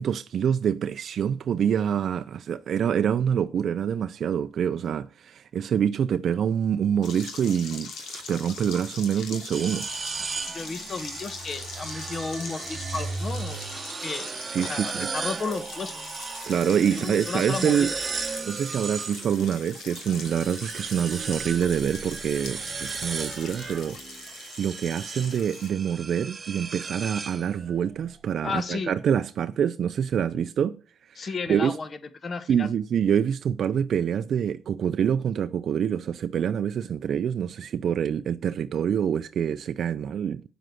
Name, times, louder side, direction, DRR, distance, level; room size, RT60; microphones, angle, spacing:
voice 1, 0.0-9.9 14.5-15.1 16.5-17.9 18.4-30.8 31.1-31.8 32.5-40.5, right 8 dB, 60° right, 0.5 m, -26 dB
sound 1, 7.0-25.7, left 4 dB, 80° left, 2.8 m, -42 dB
sound 2, 9.5-19.6 20.0-27.9, right 5 dB, 35° right, 0.9 m, -35 dB
voice 2, 10.5-14.3 14.6-16.0 16.9-17.9 28.4-28.9 31.2-31.9 32.2-32.7, left 4 dB, 40° left, 1.4 m, -33 dB
8.9 x 7.6 x 7.8 m
cardioid pair, 90°, 0 cm